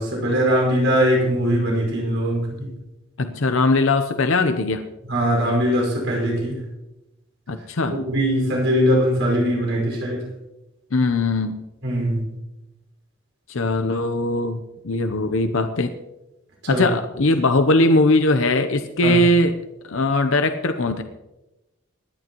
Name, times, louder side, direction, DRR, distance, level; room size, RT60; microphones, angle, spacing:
voice 1, 0.0-2.7 5.0-6.6 7.9-10.3 11.8-12.3 16.6-16.9 19.0-19.2, equal, 70° right, -1 dB, 5.2 m, -21 dB
voice 2, 3.2-4.8 7.5-7.9 10.9-11.6 13.5-15.9 16.7-19.6 19.8-21.0, left 2 dB, 75° left, 8 dB, 0.7 m, -20 dB
25.0 x 11.0 x 3.0 m, 1.0 s
head